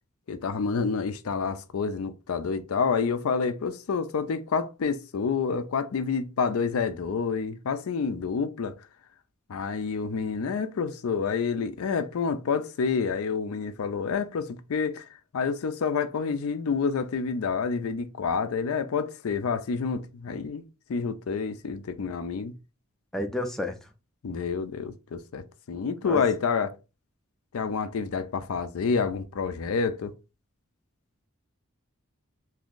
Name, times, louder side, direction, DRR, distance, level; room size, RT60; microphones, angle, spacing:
voice 1, 0.3-8.8 9.5-15.0 15.3-20.6 20.9-22.5 24.2-26.7 27.5-30.1, left 5 dB, 85° left, 0.4 m, -28 dB
voice 2, 23.1-23.9 26.0-26.2, left 1 dB, ahead, 0.4 m, -31 dB
2.7 x 2.5 x 3.7 m
head